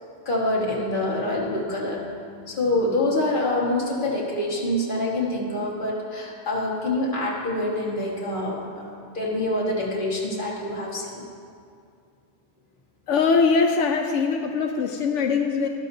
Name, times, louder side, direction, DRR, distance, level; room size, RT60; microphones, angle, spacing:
voice 1, 0.2-11.2, left 1 dB, 45° left, -3 dB, 1.7 m, -26 dB
voice 2, 13.1-15.7, left 5 dB, 85° left, 4 dB, 1.0 m, -22 dB
12.5 x 12.5 x 2.7 m, 2.4 s
omnidirectional pair, 1.2 m